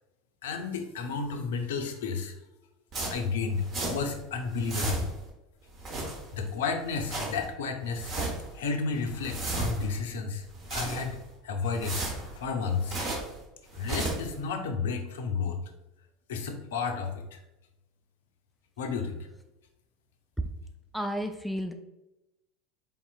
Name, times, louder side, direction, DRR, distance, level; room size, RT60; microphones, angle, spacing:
voice 1, 0.4-2.3 3.1-5.1 6.3-8.1 8.5-11.2 11.4-13.0 13.7-15.6 16.3-17.4 18.8-19.2, left 5 dB, 65° left, 5 dB, 0.5 m, -32 dB
sound 1, 2.9-4.2 4.5-5.3 5.7-6.5 6.8-7.5 7.9-8.5 8.9-10.0 10.4-11.3 11.7-13.4 13.7-14.3, right 2 dB, 35° right, 1.1 m, -34 dB
voice 2, 20.9-21.7, equal, ahead, 6 dB, 0.3 m, -32 dB
4.2 x 3.5 x 2.3 m, 0.96 s
figure-of-eight pair, 75°, 0 cm